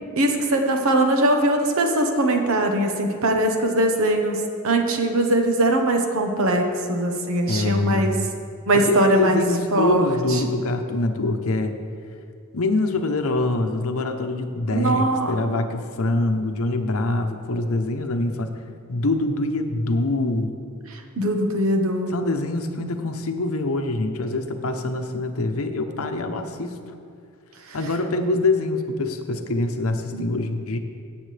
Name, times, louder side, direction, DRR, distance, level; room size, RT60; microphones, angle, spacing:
voice 1, 0.2-8.1 8.7-9.4 9.7-10.0 14.7-15.3 21.2-22.1 30.1-30.2, right 1 dB, 65° right, 4 dB, 1.1 m, -21 dB
voice 2, 7.5-8.2 8.7-11.7 12.5-18.5 18.9-20.5 22.1-26.8 27.7-30.8, left 2 dB, 70° left, 6 dB, 0.8 m, -24 dB
16.5 x 7.4 x 3.4 m, 2.4 s
head